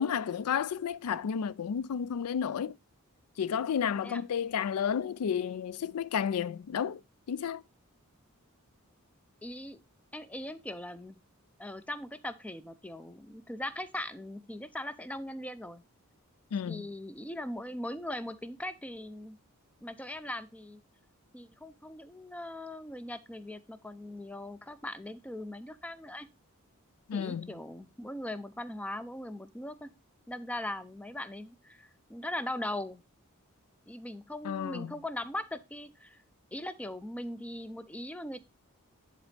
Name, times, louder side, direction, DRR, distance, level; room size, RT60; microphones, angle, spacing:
voice 1, 0.0-2.8 3.4-7.0 7.3-7.6 16.5-16.9 27.1-27.5 34.4-34.9, left 7 dB, 80° left, 0.4 m, -32 dB
voice 2, 9.4-9.8 10.1-11.2 11.6-15.8 16.7-19.4 19.8-20.8 21.3-26.3 27.1-29.9 30.3-33.0 33.9-36.2 36.5-38.4, left 1 dB, 5° left, 0.4 m, -40 dB
10.0 x 4.1 x 3.2 m
head